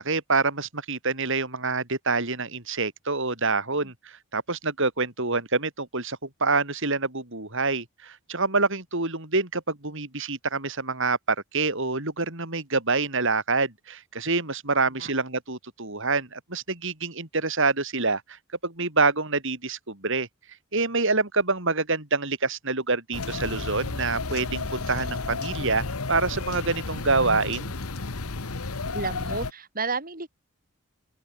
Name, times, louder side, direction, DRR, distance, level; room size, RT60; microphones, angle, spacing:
voice 1, 0.0-11.2 11.5-20.3 20.7-27.7, right 3 dB, 60° right, 5.3 m, -26 dB
voice 2, 14.7-15.1 28.9-30.3, right 4 dB, 40° right, 5.8 m, -33 dB
sound 1, 23.1-29.5, left 3 dB, 85° left, 1.4 m, -32 dB
open air
head